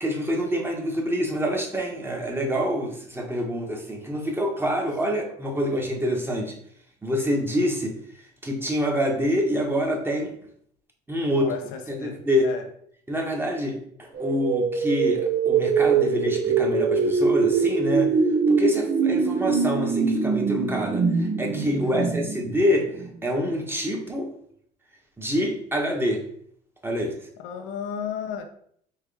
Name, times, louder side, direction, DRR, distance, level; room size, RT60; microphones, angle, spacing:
voice 1, 0.0-6.5 7.0-8.0 8.4-10.3 11.1-11.5 12.0-12.5 13.1-18.1 18.5-22.9 23.2-24.3 25.2-26.2 26.8-27.1, equal, 10° right, 1.3 m, -26 dB
voice 2, 11.3-12.7 21.8-22.1 27.4-28.4, left 7 dB, 80° left, 0.7 m, -34 dB
sound 1, 14.2-23.1, right 5 dB, 50° right, 0.8 m, -23 dB
4.7 x 3.3 x 3.3 m
supercardioid pair, 75°, 19 cm